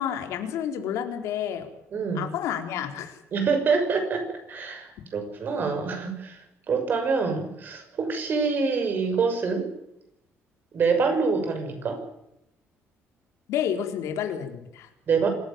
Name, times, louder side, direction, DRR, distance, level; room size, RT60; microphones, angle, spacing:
voice 1, 0.0-1.7 2.2-3.2 13.5-14.9, left 9 dB, 90° left, 5 dB, 3.9 m, -30 dB
voice 2, 1.9-2.3 3.3-9.7 10.7-12.0 15.1-15.3, right 5 dB, 40° right, 7 dB, 6.2 m, -26 dB
26.0 x 15.0 x 8.9 m, 0.83 s
cardioid pair, 160°, 5 cm